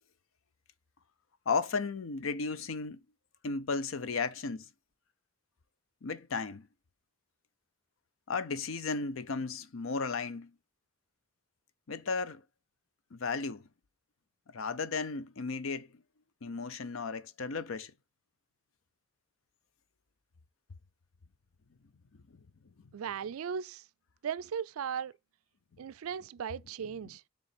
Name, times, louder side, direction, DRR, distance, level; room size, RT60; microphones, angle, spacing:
voice 1, 1.5-3.0 3.4-4.7 6.0-6.7 8.3-10.5 11.9-12.4 13.1-13.6 14.5-15.9 16.4-17.9, left 4 dB, 70° left, 0.6 m, -34 dB
voice 2, 22.9-23.8 24.2-25.1 25.8-27.2, right 7 dB, 85° right, 0.4 m, -37 dB
6.9 x 3.8 x 5.9 m
head